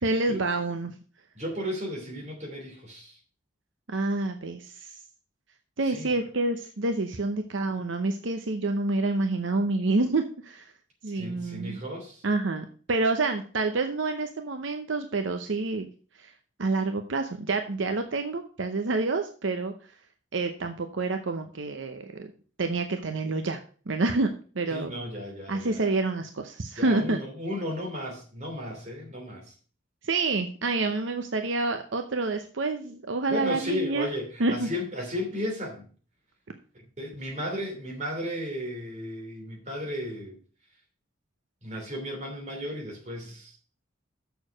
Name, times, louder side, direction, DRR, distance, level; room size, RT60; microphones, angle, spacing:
voice 1, 0.0-0.9 3.9-5.0 5.8-10.7 11.0-11.8 12.2-15.9 16.2-16.3 16.6-19.7 20.3-22.3 22.6-23.6 23.9-24.9 25.5-27.2 30.0-34.1 34.4-34.7, right 3 dB, 75° right, 6 dB, 0.8 m, -28 dB
voice 2, 1.3-3.2 5.8-6.1 11.1-12.2 24.7-25.8 26.8-29.5 33.3-35.8 37.0-40.4 41.6-43.5, equal, 35° right, 0 dB, 3.0 m, -34 dB
6.9 x 6.5 x 6.3 m, 0.40 s
head